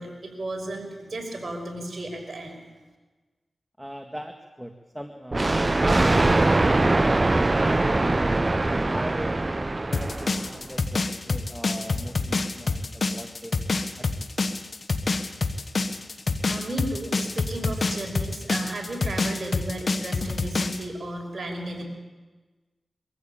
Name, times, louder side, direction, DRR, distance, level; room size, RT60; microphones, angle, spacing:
voice 1, 0.0-2.6 16.4-21.8, right 1 dB, 55° right, 2 dB, 5.8 m, -34 dB
voice 2, 3.8-8.4 8.9-13.6 14.0-14.3, equal, 5° right, 5 dB, 1.9 m, -40 dB
Thunder, 5.3-10.7, right 2 dB, 35° right, 0.7 m, -22 dB
sound 1, 9.9-20.8, left 3 dB, 65° left, 1.5 m, -26 dB
23.5 x 14.0 x 9.0 m, 1.2 s
cardioid pair, 45°, 0 cm